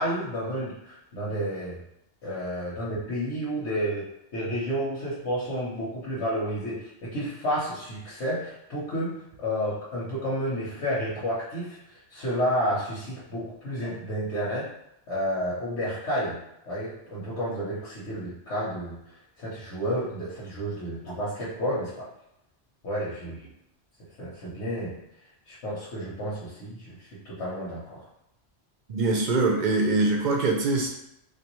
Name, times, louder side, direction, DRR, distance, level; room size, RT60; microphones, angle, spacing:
voice 1, 0.0-1.8 2.2-4.1 4.3-14.7 15.1-16.4 16.6-22.1 22.8-23.5 24.2-25.0 25.5-28.0, equal, 80° left, -8 dB, 1.2 m, -31 dB
voice 2, 28.9-30.9, right 3 dB, 55° right, 1 dB, 0.5 m, -23 dB
3.3 x 2.5 x 3.0 m, 0.81 s
omnidirectional pair, 1.2 m